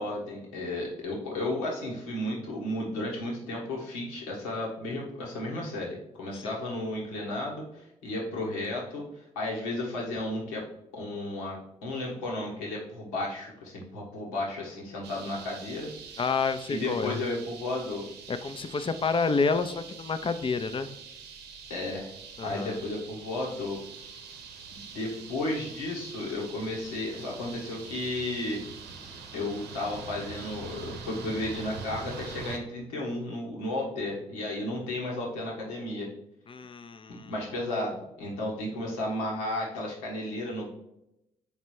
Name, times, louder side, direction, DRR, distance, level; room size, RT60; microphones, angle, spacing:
voice 1, 0.0-10.6 10.9-15.9 16.7-18.0 21.7-22.1 22.4-23.8 24.7-28.6 29.3-36.1 37.1-40.7, left 1 dB, 85° left, -3 dB, 1.4 m, -33 dB
sound 1, 15.0-32.6, right 5 dB, 75° right, 0.8 m, -44 dB
voice 2, 16.2-17.2 18.3-20.9 22.4-22.8 36.5-37.3, left 4 dB, 30° left, 9 dB, 0.6 m, -29 dB
5.4 x 4.1 x 4.5 m, 0.83 s
hypercardioid pair, 45°, 17 cm